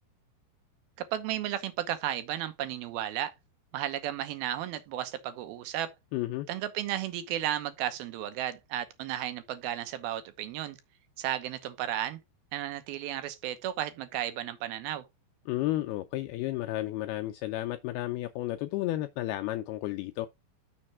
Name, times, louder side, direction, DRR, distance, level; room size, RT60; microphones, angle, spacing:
voice 1, 1.1-3.3 3.7-5.9 6.5-10.8 11.2-12.2 12.5-15.0, right 12 dB, 70° right, 2.6 m, -34 dB
voice 2, 6.1-6.5 15.5-20.3, left 16 dB, 80° left, 2.3 m, -32 dB
6.6 x 4.8 x 6.0 m
omnidirectional pair, 5.0 m